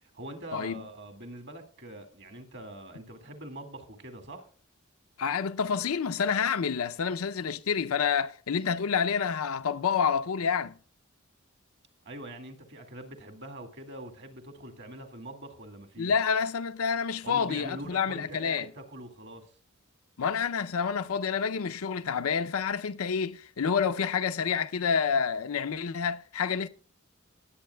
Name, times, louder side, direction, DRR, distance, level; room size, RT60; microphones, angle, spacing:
voice 1, 0.0-4.5 12.1-16.1 17.2-19.5, right 1 dB, 55° right, 2.0 m, -43 dB
voice 2, 0.5-0.8 5.2-10.7 16.0-18.7 20.2-26.7, left 6 dB, 85° left, 0.6 m, -28 dB
21.0 x 8.4 x 2.2 m
head